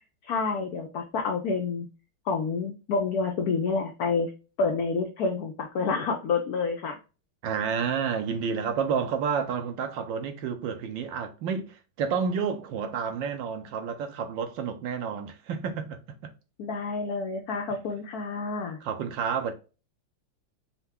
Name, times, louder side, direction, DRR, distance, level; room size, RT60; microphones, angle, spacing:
voice 1, 0.2-1.9 2.3-4.3 4.6-7.0 16.6-18.8, left 4 dB, 85° left, 0.8 m, -28 dB
voice 2, 7.4-16.3 18.8-19.5, right 6 dB, 70° right, 1.3 m, -30 dB
5.5 x 2.2 x 3.5 m
omnidirectional pair, 2.3 m